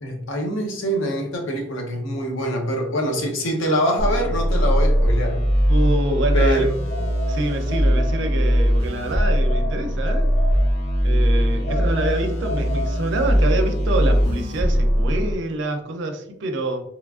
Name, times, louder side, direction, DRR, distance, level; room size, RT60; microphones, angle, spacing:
voice 1, 0.0-5.4 6.3-6.8 11.5-11.8, equal, 80° left, 2 dB, 0.6 m, -24 dB
sound 1, 4.0-15.3, equal, 40° left, 1.0 m, -20 dB
voice 2, 5.7-6.6 7.3-10.3 11.0-16.8, right 2 dB, 65° right, 5 dB, 0.4 m, -26 dB
sound 2, 6.9-8.7 9.2-11.1 11.6-13.5, left 2 dB, 5° left, 1.2 m, -34 dB
3.0 x 2.4 x 2.3 m, 0.74 s
head